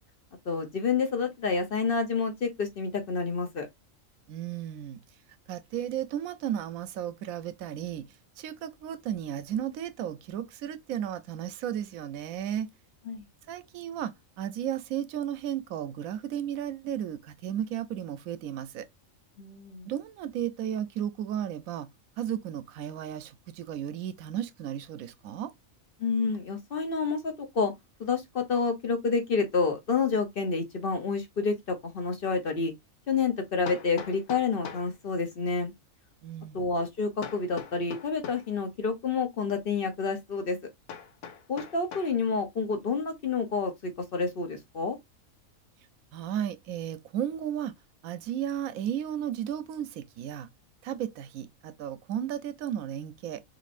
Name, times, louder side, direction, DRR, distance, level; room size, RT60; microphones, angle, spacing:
voice 1, 0.5-3.7 13.1-13.2 19.4-19.9 26.0-27.7 28.0-32.7 33.1-35.7 36.5-40.6 41.5-45.0, left 4 dB, 50° left, 0.8 m, -29 dB
voice 2, 4.3-5.0 5.5-8.1 8.4-12.7 13.5-18.9 19.8-21.9 22.2-25.5 36.2-36.6 46.1-47.7 48.0-50.5 50.8-53.4, right 10 dB, 85° right, 1.0 m, -34 dB
Hammer, 33.7-34.9 37.2-38.5 40.9-42.2, left 7 dB, 85° left, 1.2 m, -41 dB
3.9 x 3.2 x 2.4 m
omnidirectional pair, 1.4 m